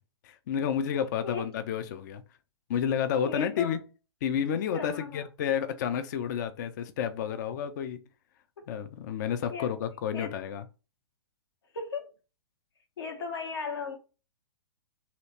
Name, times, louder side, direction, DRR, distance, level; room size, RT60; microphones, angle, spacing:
voice 1, 0.2-2.2 2.7-3.8 4.2-8.0 8.7-10.6, left 8 dB, 45° left, 0.5 m, -30 dB
voice 2, 3.2-3.8 4.7-5.2 8.6-8.7 9.5-9.7 10.1-10.4 11.7-12.1 13.0-14.0, left 5 dB, 65° left, 0.8 m, -36 dB
3.1 x 2.9 x 4.1 m
figure-of-eight pair, 115°, 14 cm